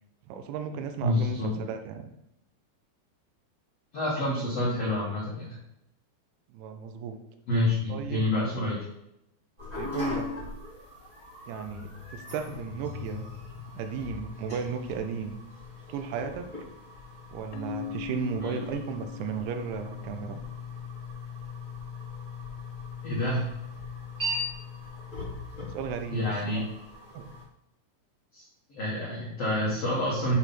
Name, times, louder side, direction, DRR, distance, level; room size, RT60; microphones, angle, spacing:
voice 1, 0.3-2.1 6.5-7.2 7.9-8.3 9.8-10.3 11.5-13.3 13.8-15.4 15.9-16.5 17.3-20.4 25.6-26.7 27.1-27.3, right 6 dB, 85° right, 6 dB, 3.0 m, -35 dB
voice 2, 1.0-1.5 3.9-5.6 7.5-8.8 18.4-18.6 23.0-23.5 26.1-26.6 28.3-30.4, left 1 dB, 70° left, -7 dB, 1.5 m, -28 dB
sound 1, 9.6-27.4, left 3 dB, 25° right, 1.0 m, -39 dB
Keyboard (musical), 17.5-20.2, left 10 dB, 90° left, 3.1 m, -40 dB
8.1 x 3.5 x 5.8 m, 0.82 s
omnidirectional pair, 5.3 m